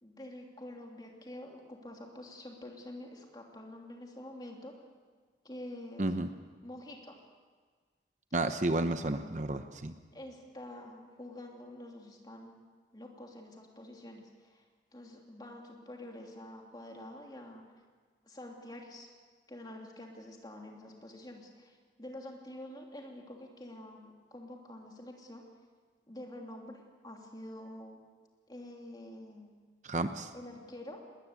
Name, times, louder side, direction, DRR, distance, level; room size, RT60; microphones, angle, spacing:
voice 1, 0.0-4.7 5.4-6.1 6.6-7.2 10.1-12.6 12.9-14.6 14.9-17.6 18.2-19.1 19.5-25.4 26.1-28.0 28.5-29.6 30.3-31.0, left 1 dB, 25° left, 1 dB, 2.9 m, -47 dB
voice 2, 8.3-9.9 29.8-30.3, right 2 dB, 40° right, 8 dB, 0.9 m, -31 dB
20.0 x 19.5 x 8.3 m, 1.5 s
head